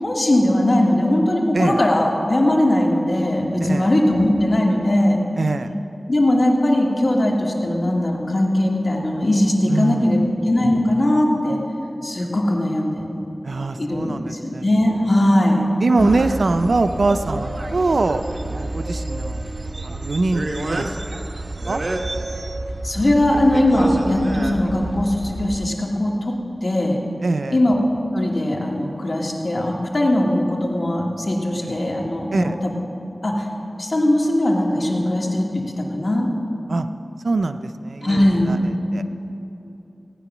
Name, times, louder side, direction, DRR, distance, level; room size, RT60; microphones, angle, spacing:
voice 1, 0.0-5.2 6.1-10.2 10.5-11.6 12.0-13.1 13.8-15.7 22.8-27.0 27.5-27.8 28.1-32.7 33.2-33.5 33.8-35.5 35.8-36.3 38.0-38.7, left 1 dB, 60° left, -1 dB, 2.0 m, -19 dB
voice 2, 5.4-5.7 9.7-10.1 13.4-14.6 15.8-19.4 19.8-21.0 21.7-21.8 27.2-27.6 32.3-32.5 36.7-36.9 37.2-38.6 38.9-39.0, right 3 dB, 80° right, 9 dB, 0.5 m, -23 dB
sound 1, 16.0-25.7, right 2 dB, 60° right, 1.1 m, -29 dB
17.5 x 9.2 x 6.1 m, 3.0 s
wide cardioid pair, 65°, 0 cm